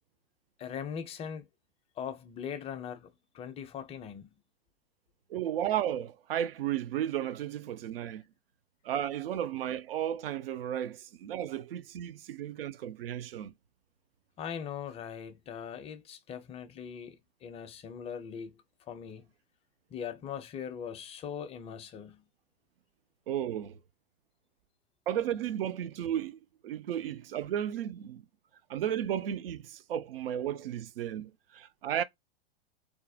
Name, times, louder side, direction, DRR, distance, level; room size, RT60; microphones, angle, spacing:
voice 1, 0.6-1.5 2.0-3.1 3.3-4.3 14.4-18.6 18.9-19.2 19.9-22.2, left 8 dB, 20° left, 0.4 m, -40 dB
voice 2, 5.3-8.2 8.8-13.5 23.3-23.8 25.1-28.2 28.7-32.0, right 10 dB, 70° right, 0.5 m, -34 dB
2.4 x 2.0 x 2.6 m
hypercardioid pair, 100°, 30 cm